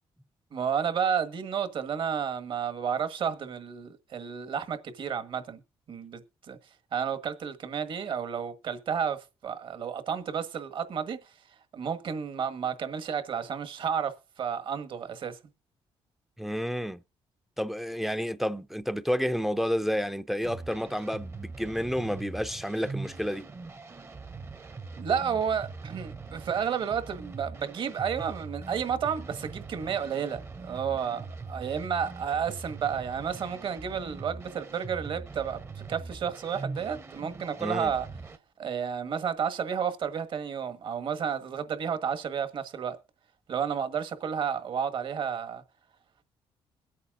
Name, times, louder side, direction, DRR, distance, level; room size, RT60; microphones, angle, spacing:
voice 1, 0.5-5.6 5.9-6.2 6.5-6.6 6.9-11.3 11.7-15.4 25.0-38.1 38.6-43.0 43.5-45.6, right 7 dB, 55° right, 1.6 m, -31 dB
voice 2, 16.4-17.0 17.6-23.4 37.6-37.9, equal, ahead, 0.5 m, -30 dB
sound 1, 20.4-38.4, right 4 dB, 25° right, 0.8 m, -42 dB
22.0 x 8.4 x 2.5 m
cardioid pair, 110°, 10 cm